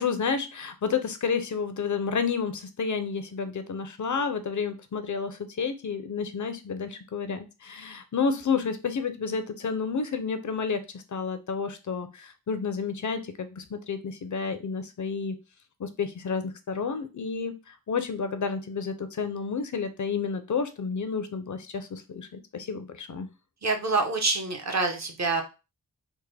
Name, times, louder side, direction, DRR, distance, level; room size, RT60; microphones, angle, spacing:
voice 1, 0.0-15.4 15.8-23.3, left 5 dB, 55° left, 9 dB, 0.6 m, -30 dB
voice 2, 23.6-25.4, right 3 dB, 50° right, 5 dB, 0.8 m, -26 dB
3.5 x 2.1 x 3.2 m, 0.29 s
wide cardioid pair, 75°, 36 cm